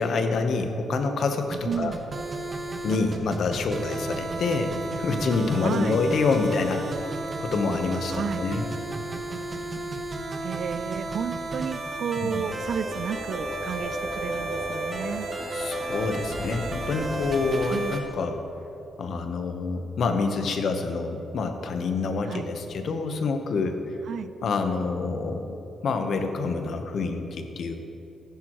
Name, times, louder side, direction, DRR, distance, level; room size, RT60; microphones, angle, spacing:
voice 1, 0.0-2.0 2.8-7.1 7.4-8.6 12.2-12.3 15.5-18.4 19.0-23.8 24.4-25.6 25.8-27.8, left 4 dB, 60° left, 6 dB, 1.0 m, -27 dB
sound 1, 1.5-18.0, right 2 dB, 40° right, 1.2 m, -34 dB
voice 2, 1.7-2.0 4.1-4.4 5.6-6.0 8.1-8.5 10.4-15.3 17.7-18.0 22.3-22.5 24.1-24.3, right 7 dB, 65° right, 12 dB, 0.4 m, -32 dB
sound 2, 12.4-17.8, equal, 40° left, 2.5 m, -35 dB
14.5 x 10.5 x 3.1 m, 3.0 s
cardioid pair, 115°, 0 cm